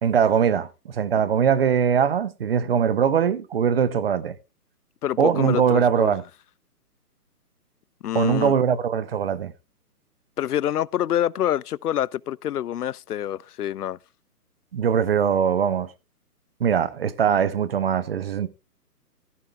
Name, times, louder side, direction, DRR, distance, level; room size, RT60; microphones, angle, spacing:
voice 1, 0.0-4.4 5.2-6.2 8.1-9.5 14.7-15.9 16.6-18.5, right 7 dB, 40° right, 0.8 m, -21 dB
voice 2, 5.0-6.1 8.0-8.5 10.4-14.0, left 11 dB, 75° left, 0.5 m, -26 dB
15.5 x 12.5 x 2.3 m
hypercardioid pair, 155°, 47 cm